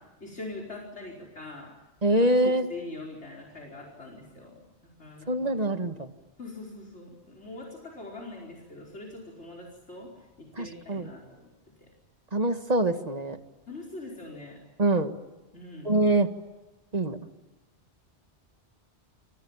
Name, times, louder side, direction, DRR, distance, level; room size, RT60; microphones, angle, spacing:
voice 1, 0.0-1.7 2.2-5.6 6.4-11.5 11.8-11.9 13.7-14.6 15.5-16.0, left 2 dB, 85° left, 1 dB, 5.2 m, -43 dB
voice 2, 2.0-2.7 5.3-6.1 10.6-11.1 12.3-13.4 14.8-15.1 15.9-16.3 16.9-17.2, right 1 dB, 35° right, 7 dB, 2.0 m, -24 dB
28.0 x 27.5 x 7.4 m, 1.2 s
omnidirectional pair, 1.1 m